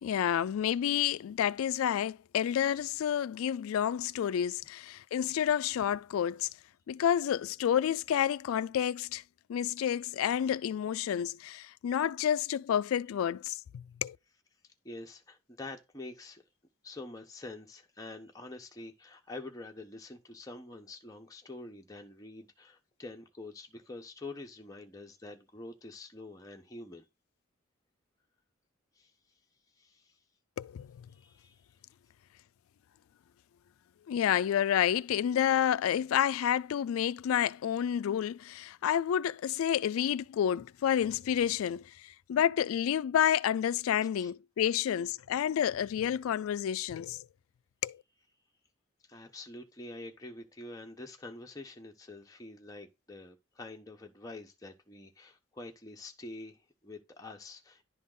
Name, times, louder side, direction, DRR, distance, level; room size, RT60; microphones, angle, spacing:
voice 1, 0.0-6.5 6.9-9.2 9.5-14.2 30.6-31.0 34.1-47.3 47.8-48.0, left 9 dB, 90° left, 0.3 m, -29 dB
voice 2, 14.8-16.4 16.8-27.0 29.0-29.1 29.8-30.2 31.2-31.6 44.2-44.3 49.1-57.8, left 2 dB, 15° left, 1.0 m, -46 dB
11.0 x 3.7 x 3.8 m
head